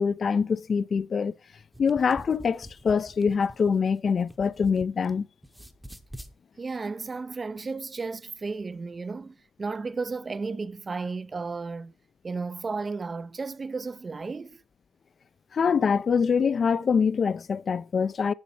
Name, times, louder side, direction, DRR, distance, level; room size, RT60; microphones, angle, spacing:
voice 1, 0.0-1.4 1.8-5.3 15.5-18.3, left 6 dB, 45° left, 0.3 m, -24 dB
sound 1, 1.6-5.1 5.4-6.3, equal, 5° right, 0.7 m, -46 dB
voice 2, 6.6-11.9 12.2-14.6, right 4 dB, 30° right, 0.3 m, -33 dB
7.1 x 6.0 x 4.3 m
cardioid pair, 90°, 0 cm